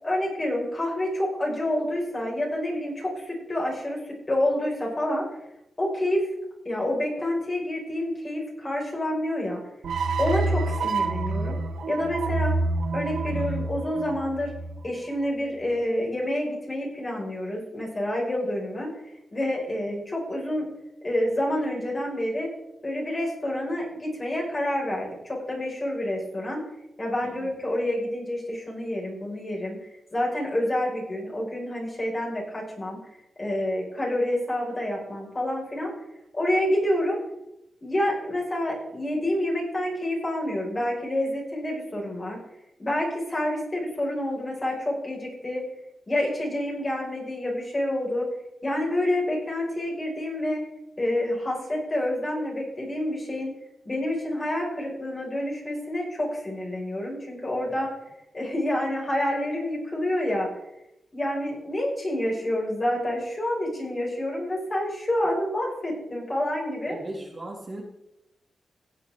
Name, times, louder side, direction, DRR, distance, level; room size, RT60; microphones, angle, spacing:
voice 1, 0.0-5.2 5.8-6.3 6.7-9.6 10.2-11.6 11.9-12.5 12.9-14.5 14.8-18.9 19.3-20.7 21.0-22.5 22.8-26.6 27.0-29.8 30.1-33.0 33.4-35.9 36.3-37.2 37.8-42.4 42.8-45.6 46.1-48.3 48.6-50.6 51.0-53.5 53.8-57.9 58.3-60.5 61.1-67.0, left 1 dB, 30° left, -3 dB, 5.4 m, -28 dB
sound 1, 9.8-15.1, right 3 dB, 85° right, 0.9 m, -28 dB
voice 2, 13.3-13.7 27.2-27.5 66.9-67.8, right 1 dB, 35° right, -1 dB, 2.5 m, -39 dB
16.5 x 8.0 x 3.7 m, 0.86 s
cardioid pair, 75°, 0 cm